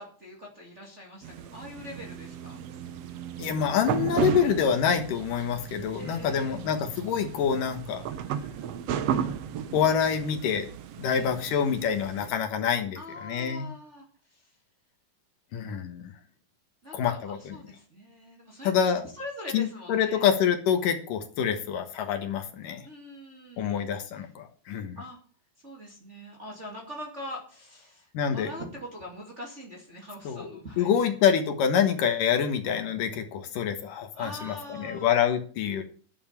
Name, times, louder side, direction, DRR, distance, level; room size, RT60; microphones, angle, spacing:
voice 1, 0.0-2.6 6.0-6.6 11.1-11.3 12.9-14.5 16.8-18.9 19.2-20.3 22.8-23.9 25.0-25.2 25.6-31.1 34.1-35.1, equal, 25° right, -1 dB, 2.2 m, -43 dB
sound 1, 1.2-12.3, right 8 dB, 90° right, 1.4 m, -34 dB
voice 2, 3.4-8.0 9.7-10.7 11.0-13.7 15.5-16.1 16.9-17.6 18.6-19.0 19.5-22.9 23.6-25.0 28.1-28.5 30.2-30.5 30.8-35.8, left 8 dB, 70° left, 7 dB, 2.9 m, -26 dB
11.5 x 7.4 x 7.2 m, 0.41 s
omnidirectional pair, 4.0 m